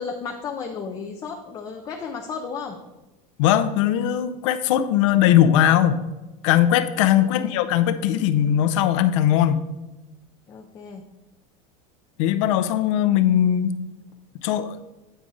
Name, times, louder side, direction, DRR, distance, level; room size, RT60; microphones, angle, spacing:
voice 1, 0.0-2.8 7.2-7.6 10.5-11.0, left 5 dB, 20° left, 2 dB, 0.4 m, -34 dB
voice 2, 3.4-6.0 6.4-9.7 12.2-13.7 14.4-14.8, left 11 dB, 65° left, 12 dB, 0.6 m, -19 dB
9.1 x 4.9 x 4.0 m, 1.1 s
supercardioid pair, 170°, 18 cm